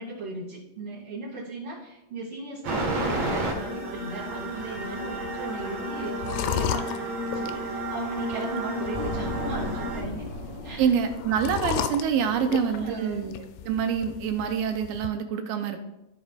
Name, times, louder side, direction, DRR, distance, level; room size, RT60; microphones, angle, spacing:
voice 1, 0.0-10.3 10.6-11.0 12.5-13.3, right 2 dB, 40° right, -11 dB, 2.3 m, -37 dB
sound 1, 2.6-10.0, right 1 dB, 55° right, 1.7 m, -32 dB
sound 2, 3.0-15.1, left 10 dB, 90° left, 2.7 m, -36 dB
sound 3, 8.9-12.7, left 2 dB, 15° right, 2.5 m, -36 dB
voice 2, 10.8-15.8, right 7 dB, 85° right, 5 dB, 2.1 m, -26 dB
14.5 x 5.0 x 2.4 m, 0.90 s
omnidirectional pair, 4.7 m